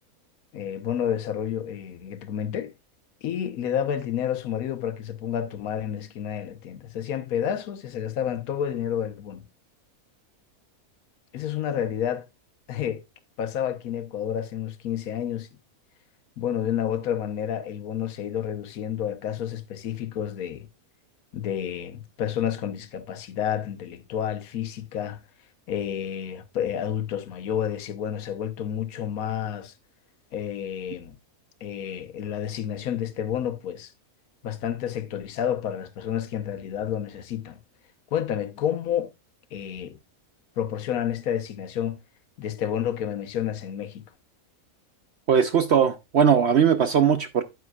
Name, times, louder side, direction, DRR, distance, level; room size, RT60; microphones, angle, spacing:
voice 1, 0.5-2.7 3.2-9.4 11.3-12.3 12.7-13.0 13.4-15.5 16.4-20.7 21.3-25.2 25.7-29.7 30.3-31.1 31.6-33.9 34.4-37.6 38.1-39.1 39.5-40.0 40.6-42.0 42.4-44.0, left 9 dB, 75° left, 1.4 m, -30 dB
voice 2, 45.3-47.4, right 7 dB, 60° right, 0.8 m, -19 dB
9.3 x 9.0 x 2.3 m
omnidirectional pair, 1.6 m